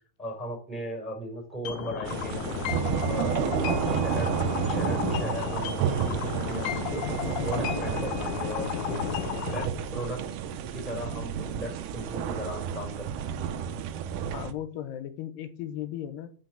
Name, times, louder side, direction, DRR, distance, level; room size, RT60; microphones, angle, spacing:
voice 1, 0.2-2.6 3.1-3.4 3.8-4.3 4.7-7.0 7.4-9.0 9.4-10.2 10.7-13.4, right 1 dB, ahead, 2 dB, 3.7 m, -37 dB
sound 1, 1.7-9.7, left 10 dB, 75° left, 2.4 m, -33 dB
sound 2, 2.1-14.5, right 8 dB, 75° right, 2.0 m, -31 dB
voice 2, 14.3-16.3, left 11 dB, 90° left, 9 dB, 3.0 m, -36 dB
8.5 x 6.0 x 7.5 m, 0.42 s
omnidirectional pair, 4.5 m